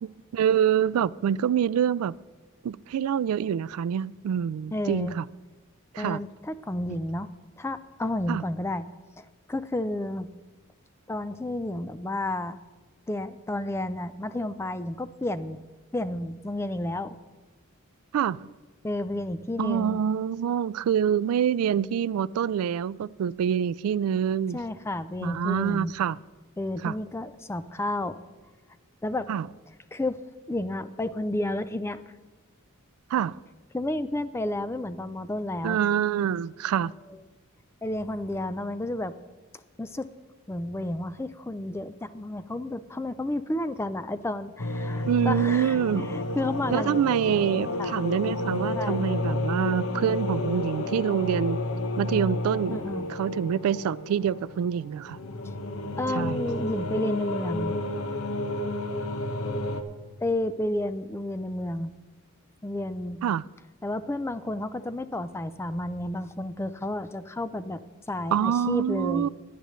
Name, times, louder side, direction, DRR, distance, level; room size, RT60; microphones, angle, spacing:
voice 1, 0.0-2.1 2.6-5.2 5.9-6.2 8.3-8.4 18.1-18.5 19.6-24.6 25.2-26.2 26.8-26.9 29.3-29.5 33.1-33.4 35.6-36.9 45.0-46.1 46.7-51.6 52.0-52.8 53.1-55.2 56.1-56.4 63.2-63.4 68.3-69.3, right 8 dB, 85° right, 0.3 m, -26 dB
voice 2, 4.7-5.2 6.0-7.3 7.6-8.8 9.2-10.3 11.1-12.6 13.1-15.6 15.9-17.2 18.8-20.0 24.5-25.9 26.6-28.2 29.0-29.3 29.9-30.2 30.5-32.0 33.7-35.8 37.8-39.2 39.8-40.1 40.5-47.0 47.8-48.0 48.8-49.0 52.7-53.1 56.0-57.7 60.2-61.9 62.6-63.2 63.8-67.8 68.1-69.3, left 1 dB, 10° left, 0.4 m, -31 dB
sound 1, 44.6-59.8, left 1 dB, 75° left, 0.9 m, -31 dB
17.0 x 10.0 x 3.1 m
head